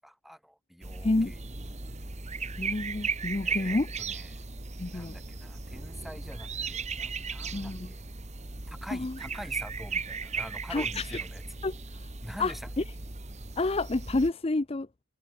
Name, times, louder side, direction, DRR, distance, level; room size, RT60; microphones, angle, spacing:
voice 1, 0.0-1.4 3.4-4.4 4.9-8.0 8.7-11.4 12.2-12.7, equal, ahead, 1.9 m, -45 dB
sound 1, 0.8-14.3, right 4 dB, 30° right, 1.8 m, -37 dB
voice 2, 1.0-1.3 2.6-3.9 4.8-5.2 7.5-7.9 8.9-9.1 10.7-11.0 11.6-11.7 12.4-12.5 13.6-14.9, left 2 dB, 25° left, 0.5 m, -28 dB
head